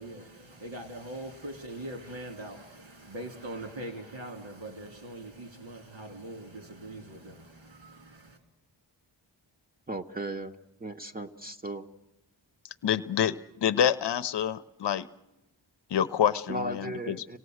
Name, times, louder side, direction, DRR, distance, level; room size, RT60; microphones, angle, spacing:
voice 1, 0.0-8.4, right 1 dB, 80° right, 3.3 m, -42 dB
voice 2, 9.9-10.5 10.8-11.8 16.5-17.4, right 1 dB, 20° right, 0.8 m, -36 dB
voice 3, 12.8-13.3 13.6-15.1 15.9-17.3, left 9 dB, 65° left, 0.7 m, -27 dB
26.5 x 18.0 x 8.0 m
wide cardioid pair, 90°, 45 cm